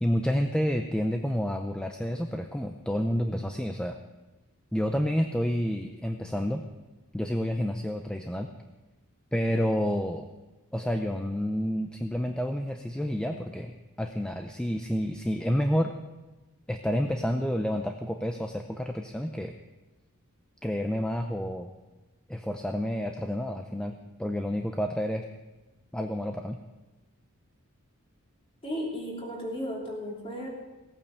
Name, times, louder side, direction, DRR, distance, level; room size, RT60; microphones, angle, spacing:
voice 1, 0.0-4.0 4.7-6.6 7.1-8.5 9.3-10.3 10.7-15.9 16.7-19.6 20.6-21.7 22.3-25.2 25.9-26.6, equal, 5° left, 5 dB, 0.5 m, -29 dB
voice 2, 28.6-30.5, equal, 25° left, -3 dB, 3.2 m, -34 dB
17.0 x 8.9 x 6.6 m, 1.1 s
head